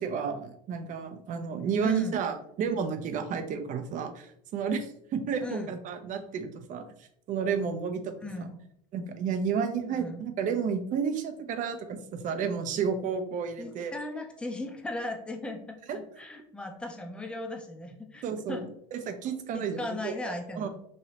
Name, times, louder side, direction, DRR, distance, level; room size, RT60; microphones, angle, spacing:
voice 1, 0.0-6.8 7.3-8.2 8.9-13.9 15.9-16.0 18.2-19.8 20.0-20.7, right 6 dB, 45° right, 8 dB, 0.5 m, -31 dB
voice 2, 1.8-2.3 5.4-5.7 8.2-8.6 9.9-10.2 13.6-15.6 15.9-18.6 19.5-20.7, left 2 dB, 5° left, 3 dB, 0.5 m, -37 dB
3.1 x 2.8 x 2.8 m, 0.70 s
supercardioid pair, 110°, 19 cm